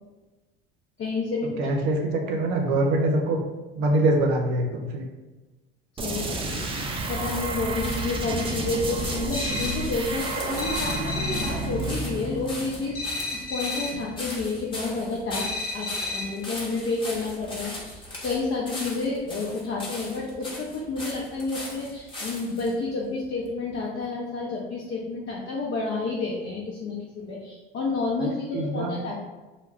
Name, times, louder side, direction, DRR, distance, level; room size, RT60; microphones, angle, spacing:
voice 1, 1.0-1.6 6.0-6.7 7.1-29.2, left 3 dB, 40° left, -4 dB, 0.6 m, -30 dB
voice 2, 1.6-3.4 3.8-5.0 28.2-28.9, right 1 dB, 60° right, 2 dB, 0.7 m, -24 dB
sound 1, 6.0-13.5, right 2 dB, 20° right, 0.4 m, -31 dB
sound 2, 6.7-22.7 23.4-23.5, left 1 dB, 15° left, 0.9 m, -39 dB
sound 3, 9.3-10.0 10.6-11.7 12.9-14.1 15.3-16.5, left 3 dB, 80° left, 0.9 m, -32 dB
2.2 x 2.2 x 3.4 m, 1.2 s
hypercardioid pair, 75°, 30 cm